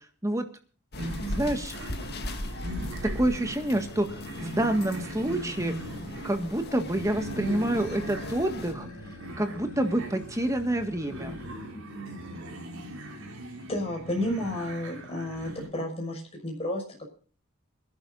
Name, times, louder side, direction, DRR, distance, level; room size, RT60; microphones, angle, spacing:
sound 1, 0.9-8.7, left 1 dB, 50° left, 1.9 m, -38 dB
sound 2, 1.0-15.7, right 1 dB, 65° right, 5.5 m, -40 dB
voice 1, 1.2-1.7 3.0-5.7 6.2-8.9 9.4-11.3, right 1 dB, 15° right, 6 dB, 1.7 m, -28 dB
sound 3, 6.8-11.9, left 3 dB, 90° left, 4.5 m, -50 dB
voice 2, 13.7-17.0, left 1 dB, 30° left, 0 dB, 6.3 m, -32 dB
27.0 x 11.5 x 2.6 m, 0.41 s
head